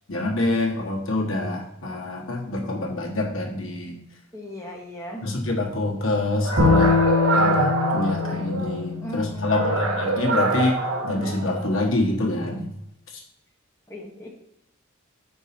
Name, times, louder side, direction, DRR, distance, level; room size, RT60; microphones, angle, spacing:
voice 1, 0.1-4.0 5.2-7.0 7.3-10.8 11.0-12.7, left 2 dB, 65° left, -1 dB, 1.4 m, -26 dB
voice 2, 4.3-5.2 9.0-10.0 13.9-14.3, left 1 dB, 15° left, -2 dB, 1.0 m, -37 dB
sound 1, 6.4-8.8 9.4-11.8, right 2 dB, 80° right, 1.3 m, -25 dB
Bowed string instrument, 6.6-9.8, left 4 dB, 60° right, 2.4 m, -23 dB
5.4 x 4.6 x 5.9 m, 0.86 s
head